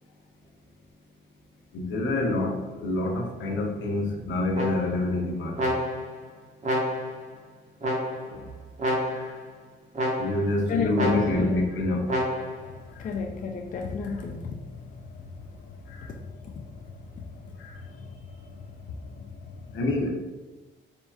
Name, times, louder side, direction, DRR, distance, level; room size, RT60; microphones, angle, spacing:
voice 1, 1.7-5.7 8.3-8.4 9.2-9.3 10.2-12.1 16.0-16.1 19.7-20.1, left 2 dB, 70° left, 0 dB, 0.8 m, -27 dB
sound 1, 4.5-5.1 5.6-6.2 6.6-7.3 7.8-8.4 8.8-9.4 9.9-10.5 10.9-11.6 12.1-12.7, equal, 35° right, 1.2 m, -29 dB
voice 2, 10.7-11.6 12.6-19.8, left 5 dB, 40° left, 2 dB, 0.4 m, -35 dB
4.3 x 2.8 x 2.3 m, 1.2 s
cardioid pair, 90°, 20 cm